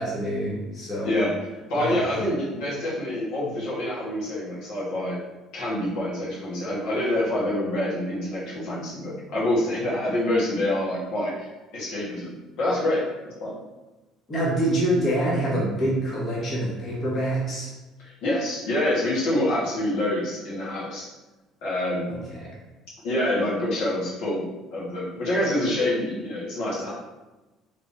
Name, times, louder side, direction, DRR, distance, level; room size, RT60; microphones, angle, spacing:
voice 1, 0.0-1.2 1.7-2.0 14.3-17.7 22.1-22.5, right 1 dB, 30° left, -6 dB, 1.1 m, -26 dB
voice 2, 1.7-5.2 5.5-13.5 18.0-21.1 21.6-22.2 23.0-26.9, left 1 dB, 75° left, -7 dB, 1.3 m, -26 dB
3.5 x 3.2 x 2.6 m, 1.1 s
cardioid pair, 135°, 0 cm